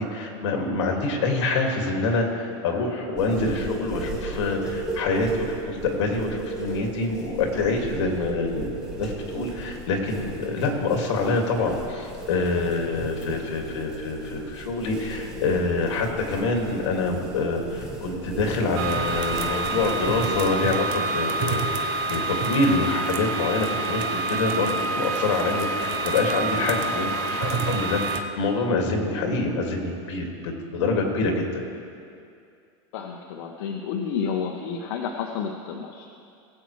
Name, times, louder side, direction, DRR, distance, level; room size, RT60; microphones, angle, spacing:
voice 1, 0.0-8.7 9.0-31.6, left 3 dB, 80° left, 1 dB, 2.2 m, -26 dB
sound 1, 3.2-20.5, right 2 dB, 5° right, 1.3 m, -36 dB
sound 2, 18.8-28.2, right 2 dB, 45° right, 0.8 m, -27 dB
voice 2, 32.9-36.1, left 6 dB, 65° left, 2 dB, 0.8 m, -30 dB
20.0 x 8.4 x 3.2 m, 2.5 s
supercardioid pair, 160°, 15 cm